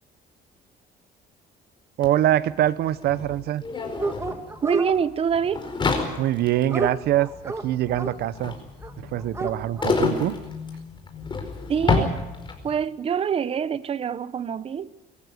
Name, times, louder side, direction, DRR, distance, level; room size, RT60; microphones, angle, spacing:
sound 1, 2.0-2.1 2.3-12.8, left 4 dB, 25° left, 4.8 m, -29 dB
voice 1, 2.0-3.6 6.2-8.5 9.0-10.4, right 13 dB, 70° right, 0.8 m, -24 dB
Dog, 4.0-4.9 6.0-8.1 8.8-8.9 9.2-9.9, right 3 dB, 15° right, 1.9 m, -30 dB
voice 2, 4.6-5.6 11.7-12.1 12.6-14.9, right 7 dB, 35° right, 0.8 m, -25 dB
23.0 x 14.5 x 9.3 m
cardioid pair, 110°, 17 cm